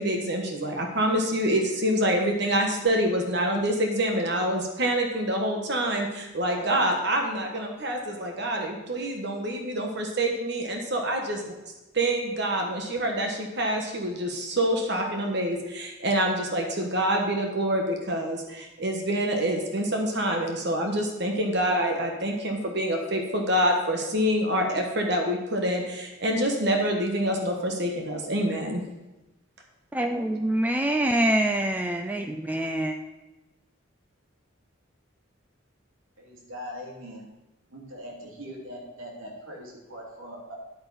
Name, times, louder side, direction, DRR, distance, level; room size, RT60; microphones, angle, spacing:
voice 1, 0.0-11.5 11.9-28.8, right 1 dB, 55° right, 2 dB, 1.3 m, -26 dB
voice 2, 29.9-32.9, right 1 dB, 10° right, 5 dB, 0.4 m, -25 dB
voice 3, 36.2-37.2 37.7-40.5, equal, 80° right, -1 dB, 2.6 m, -41 dB
9.6 x 9.0 x 4.1 m, 1.0 s
head